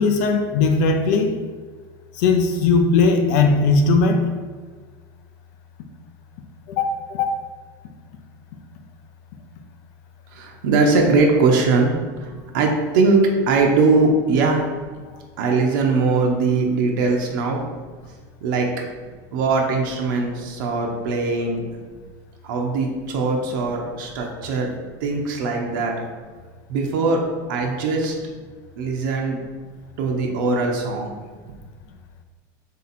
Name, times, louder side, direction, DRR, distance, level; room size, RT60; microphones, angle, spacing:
voice 1, 0.0-1.4 2.2-4.3 6.7-7.3, left 4 dB, 60° left, 6 dB, 0.5 m, -18 dB
voice 2, 10.3-14.7 15.4-17.6 18.4-18.7 19.3-21.6 22.4-24.7 25.0-26.0 26.7-27.2 27.5-28.2 28.8-29.4 30.0-31.1, right 3 dB, 85° right, 0 dB, 0.6 m, -20 dB
3.5 x 2.8 x 4.1 m, 1.5 s
cardioid pair, 180°, 11 cm